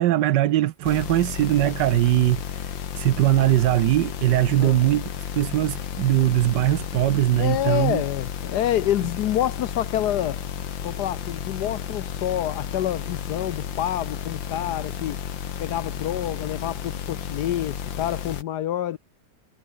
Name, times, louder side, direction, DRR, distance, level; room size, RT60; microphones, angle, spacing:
voice 1, 0.0-2.4 2.9-5.1 5.3-8.0, right 14 dB, 75° right, 1.3 m, -21 dB
sound 1, 0.8-18.4, left 8 dB, 85° left, 2.2 m, -33 dB
voice 2, 7.4-10.4 10.8-15.2 15.6-19.0, left 12 dB, 70° left, 1.2 m, -27 dB
omnidirectional pair, 2.0 m